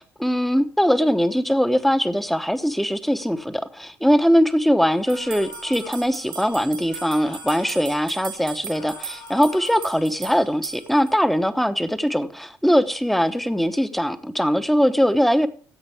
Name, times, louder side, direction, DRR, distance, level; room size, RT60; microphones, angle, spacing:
voice 1, 0.2-15.5, equal, ahead, 1.1 m, -21 dB
sound 1, 5.0-6.1 6.8-8.0 8.7-10.0, left 5 dB, 80° left, 4.1 m, -44 dB
sound 2, 5.1-11.1, right 6 dB, 75° right, 2.0 m, -37 dB
14.5 x 7.9 x 3.5 m
hypercardioid pair, 55°, 10 cm